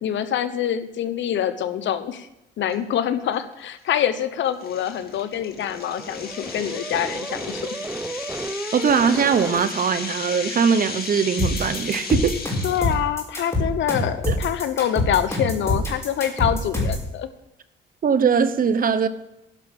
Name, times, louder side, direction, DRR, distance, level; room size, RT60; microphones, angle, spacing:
voice 1, 0.0-2.3 2.6-7.8 12.6-17.3, left 10 dB, 70° left, 11 dB, 1.0 m, -25 dB
sound 1, 2.7-2.8 3.3-3.5 4.0-4.1 4.6-12.9, left 4 dB, 50° left, 2.1 m, -35 dB
sound 2, 5.0-9.6, right 2 dB, 10° right, 0.7 m, -34 dB
voice 2, 8.7-12.4 14.2-14.4 18.0-19.1, right 6 dB, 45° right, 12 dB, 0.9 m, -20 dB
sound 3, 11.4-17.1, left 2 dB, 15° left, 5.0 m, -25 dB
11.0 x 5.9 x 8.7 m, 0.89 s
cardioid pair, 90°, 20 cm